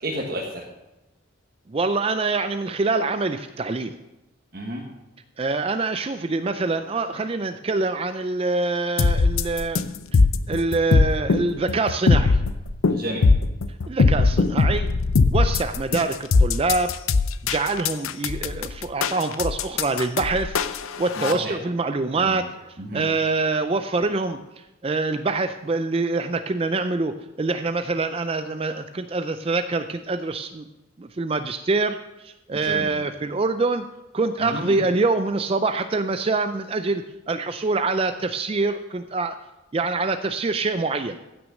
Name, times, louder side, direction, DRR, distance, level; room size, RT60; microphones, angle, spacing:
voice 1, 0.0-0.7 4.5-4.8 12.9-13.3 21.2-21.5 22.3-22.4 22.8-23.0 32.6-32.9 34.4-34.7, right 1 dB, 45° right, -1 dB, 1.3 m, -31 dB
voice 2, 1.7-3.9 5.4-9.8 10.1-10.2 10.5-12.4 13.9-14.9 15.3-16.9 17.4-20.6 21.0-30.6 31.0-33.8 34.1-39.4 39.7-41.2, right 3 dB, 25° right, 9 dB, 0.4 m, -25 dB
sound 1, 9.0-21.3, left 4 dB, 80° left, 0.6 m, -20 dB
15.5 x 6.2 x 6.3 m, 0.98 s
head